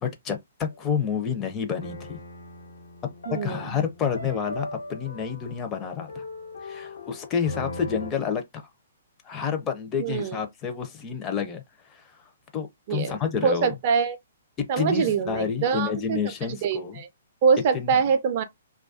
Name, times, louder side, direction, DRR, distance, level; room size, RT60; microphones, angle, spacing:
voice 1, 0.0-2.2 3.3-6.2 6.6-8.6 9.2-11.6 11.9-12.0 12.5-13.7 14.6-17.0 17.7-18.0, left 7 dB, 20° left, 0.5 m, -29 dB
sound 1, 0.7-1.0 1.8-8.1, left 1 dB, 70° left, 0.6 m, -40 dB
voice 2, 3.3-3.8 10.0-10.4 12.9-13.2 13.4-14.2 14.7-16.2 16.5-17.1 17.4-18.4, right 6 dB, 40° right, 0.4 m, -24 dB
2.3 x 2.2 x 2.4 m
figure-of-eight pair, 120°, 0 cm